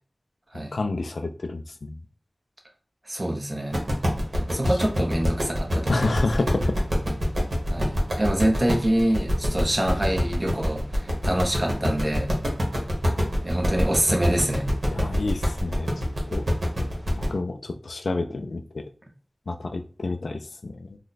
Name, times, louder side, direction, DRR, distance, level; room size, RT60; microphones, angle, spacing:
voice 1, 0.7-2.0 5.9-6.8 14.9-15.9 16.3-16.5 17.1-18.8 19.5-21.0, left 3 dB, 90° left, 7 dB, 0.4 m, -29 dB
voice 2, 3.1-3.7 4.5-6.2 7.7-12.3 13.4-14.7, right 1 dB, 35° right, 2 dB, 0.8 m, -25 dB
sound 1, 3.7-17.3, equal, 75° right, 1.2 m, -26 dB
2.9 x 2.2 x 4.0 m, 0.41 s
wide cardioid pair, 65°, 0 cm